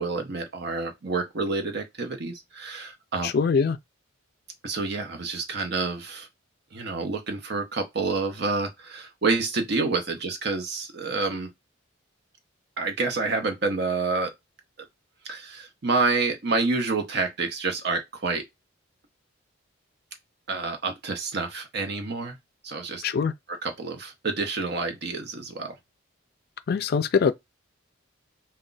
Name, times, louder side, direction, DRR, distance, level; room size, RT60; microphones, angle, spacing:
voice 1, 0.0-3.3 4.6-6.3 6.7-11.5 12.8-14.3 15.2-18.4 20.5-22.4 22.6-23.0 23.6-25.8, right 3 dB, 55° right, 0.7 m, -28 dB
voice 2, 3.2-3.8 23.0-23.3 26.7-27.3, left 5 dB, 50° left, 0.3 m, -23 dB
2.4 x 2.1 x 3.8 m
head